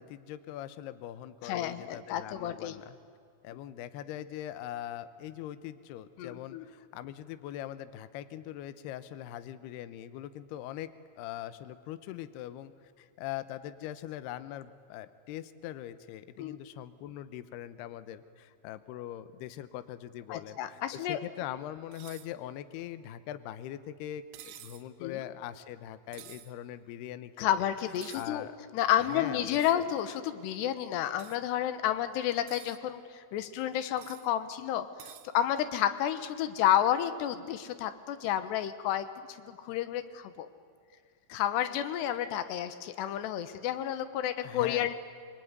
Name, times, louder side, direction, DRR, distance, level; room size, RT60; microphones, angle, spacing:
voice 1, 0.0-3.0 3.4-27.3 28.1-28.6 29.0-29.9 44.4-44.9, left 12 dB, 85° left, 13 dB, 2.3 m, -42 dB
voice 2, 1.4-2.7 6.2-6.6 16.4-16.6 20.3-21.2 25.0-25.2 27.4-28.5 28.7-39.1 39.5-40.5 41.3-45.0, left 11 dB, 70° left, 12 dB, 2.8 m, -31 dB
sound 1, 21.9-22.3 24.3-24.9 26.1-26.5 28.0-28.3 29.6-29.8 31.2-31.4 32.3-32.8 34.0-34.3 35.0-35.3, right 12 dB, 70° right, 2.7 m, -50 dB
26.0 x 24.0 x 9.6 m, 2.2 s
omnidirectional pair, 5.9 m